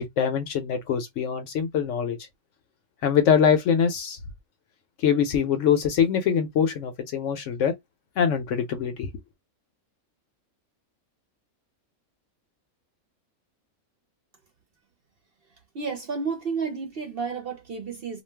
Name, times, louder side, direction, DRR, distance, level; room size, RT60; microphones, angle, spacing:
voice 1, 0.0-2.2 3.0-4.2 5.0-7.8 8.2-9.1, left 7 dB, 70° left, 0.8 m, -23 dB
voice 2, 15.7-18.2, right 5 dB, 55° right, 0.7 m, -31 dB
2.4 x 2.2 x 3.2 m
omnidirectional pair, 1.5 m